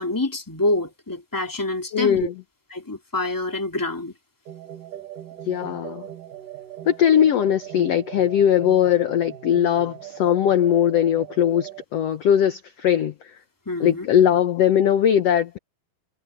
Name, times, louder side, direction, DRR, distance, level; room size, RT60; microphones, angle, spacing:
voice 1, 0.0-2.3 2.7-4.1 13.7-14.1, left 2 dB, 5° left, 2.6 m, -26 dB
voice 2, 1.9-2.3 5.5-6.1 6.8-13.1 13.8-15.6, left 9 dB, 65° left, 1.6 m, -20 dB
sound 1, 4.5-11.8, right 12 dB, 65° right, 3.7 m, -40 dB
omnidirectional pair, 4.2 m